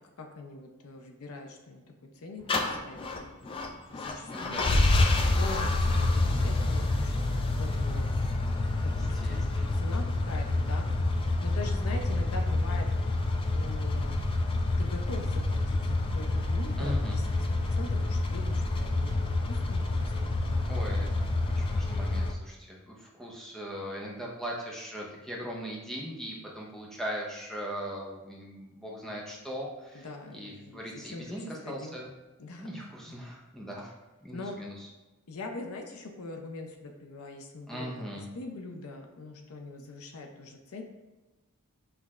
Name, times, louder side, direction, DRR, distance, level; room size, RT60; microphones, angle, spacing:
voice 1, 0.2-1.8 2.2-2.5 2.8-3.0 3.9-4.8 5.2-8.1 8.8-10.9 11.4-12.9 13.5-14.2 14.8-17.2 17.7-20.1 20.4-21.2 29.9-31.2 31.7-32.0 32.4-32.7 34.3-34.6 35.3-38.0 38.3-40.8, left 2 dB, 70° left, 3 dB, 0.6 m, -42 dB
sound 1, 2.5-22.3, left 2 dB, 25° left, 0.3 m, -28 dB
voice 2, 4.3-4.7 8.9-9.8 16.8-17.2 20.6-32.1 32.6-33.9 34.2-34.9 37.7-38.3, equal, ahead, -3 dB, 0.7 m, -39 dB
5.7 x 3.1 x 2.4 m, 1.1 s
head